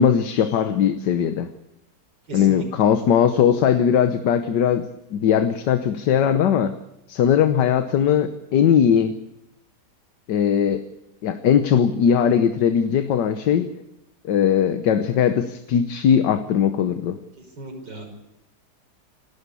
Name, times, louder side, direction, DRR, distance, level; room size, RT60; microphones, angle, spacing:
voice 1, 0.0-1.5 2.3-6.7 7.1-9.2 10.3-10.8 11.2-13.7 14.3-17.2, left 8 dB, 80° left, 10 dB, 1.6 m, -19 dB
voice 2, 2.3-2.6 17.6-18.1, right 2 dB, 80° right, 3 dB, 6.2 m, -36 dB
28.5 x 12.5 x 8.3 m, 0.93 s
omnidirectional pair, 1.9 m